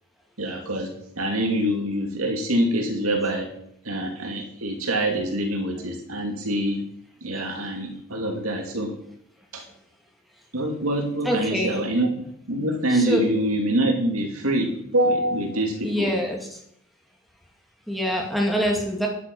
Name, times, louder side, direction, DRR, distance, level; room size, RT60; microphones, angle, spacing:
voice 1, 0.4-3.5 3.8-6.8 7.2-8.9 9.5-9.6 10.5-16.1, right 1 dB, 85° right, 3 dB, 2.5 m, -25 dB
voice 2, 11.2-11.8 12.9-13.2 15.8-16.6 17.9-19.1, equal, ahead, 0 dB, 2.3 m, -25 dB
11.5 x 8.6 x 5.5 m, 0.70 s
head